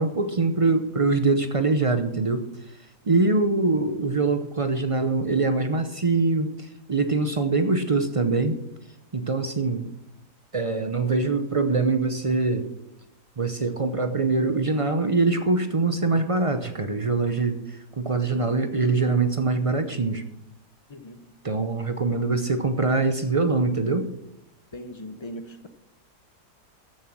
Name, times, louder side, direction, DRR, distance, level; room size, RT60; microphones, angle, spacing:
voice 1, 0.0-2.5 3.1-8.6 9.1-9.8 10.5-12.7 13.4-17.6 18.0-20.2 21.4-24.1, right 3 dB, 50° right, 8 dB, 0.4 m, -23 dB
voice 2, 24.7-25.7, equal, 30° left, 9 dB, 0.5 m, -39 dB
14.0 x 7.4 x 6.1 m, 0.85 s
omnidirectional pair, 1.7 m